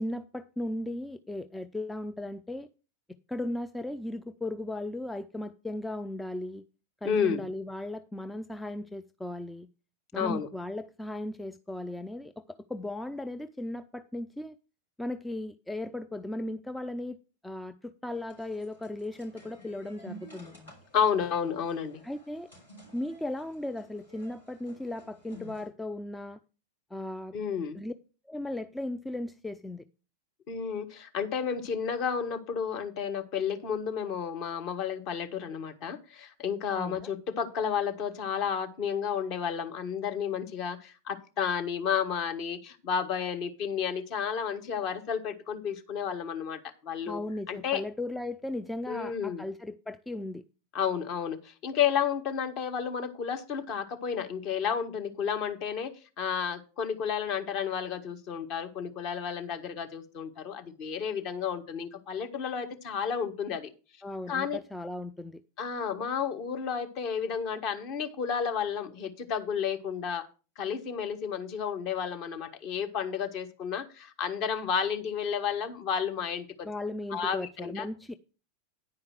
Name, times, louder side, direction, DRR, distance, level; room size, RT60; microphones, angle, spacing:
voice 1, 0.0-2.7 3.3-6.6 7.0-9.7 10.1-12.4 12.7-14.6 15.0-17.2 17.4-20.7 22.0-22.5 22.9-26.4 26.9-27.3 27.7-27.9 28.3-29.8 36.7-37.1 47.1-50.4 64.0-65.4 76.6-78.2, left 1 dB, 5° left, 0.4 m, -36 dB
voice 2, 7.0-7.5 10.1-10.5 20.9-22.0 27.3-27.8 30.5-47.2 47.5-47.8 48.9-49.5 50.7-63.7 64.3-64.6 65.6-70.3 70.6-76.7 77.1-77.9, left 7 dB, 40° left, 1.3 m, -31 dB
sound 1, 18.1-25.7, right 1 dB, 80° left, 4.5 m, -52 dB
9.9 x 4.7 x 6.5 m
figure-of-eight pair, 90°, 0 cm